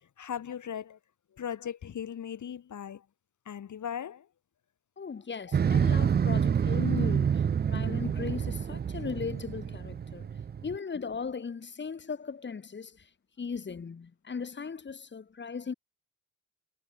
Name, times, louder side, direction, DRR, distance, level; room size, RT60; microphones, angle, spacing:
voice 1, 0.2-1.0 1.4-3.0 3.5-4.3 5.5-5.6, left 8 dB, 45° left, 1.3 m, -38 dB
voice 2, 5.0-10.3 10.6-13.0 13.4-15.7, left 5 dB, 30° left, 1.0 m, -37 dB
Motorcycle, 5.5-10.8, right 7 dB, 25° right, 0.5 m, -27 dB
hypercardioid pair, 45°, 40 cm